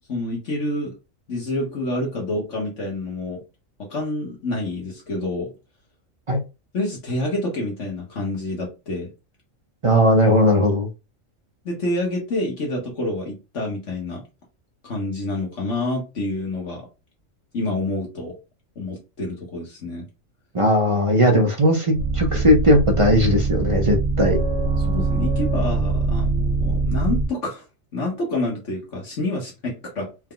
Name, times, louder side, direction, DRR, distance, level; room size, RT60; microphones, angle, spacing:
voice 1, 0.1-1.0 1.3-3.4 3.8-5.5 6.7-9.1 11.6-14.2 14.8-16.9 17.5-18.4 18.7-20.0 24.8-27.6 27.9-30.1, left 2 dB, 65° left, -1 dB, 1.6 m, -28 dB
voice 2, 9.8-10.9 20.5-24.4, equal, 35° right, 2 dB, 0.5 m, -18 dB
sound 1, 21.9-27.3, right 3 dB, 70° right, 1.3 m, -22 dB
4.4 x 2.2 x 3.8 m, 0.28 s
omnidirectional pair, 1.4 m